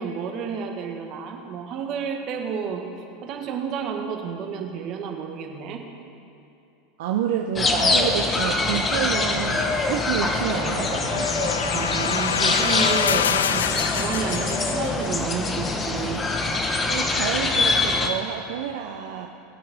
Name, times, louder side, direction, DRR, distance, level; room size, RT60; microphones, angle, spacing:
voice 1, 0.0-2.8 3.2-5.8 11.7-16.3, right 6 dB, 50° right, 3 dB, 1.6 m, -30 dB
voice 2, 7.0-11.3 16.9-19.3, right 9 dB, 70° right, 2 dB, 0.7 m, -29 dB
sound 1, 7.6-18.1, left 3 dB, 25° left, 1.2 m, -24 dB
sound 2, 10.0-15.2, left 8 dB, 85° left, 0.3 m, -27 dB
19.5 x 8.7 x 3.6 m, 2.7 s
hypercardioid pair, 90°, 0 cm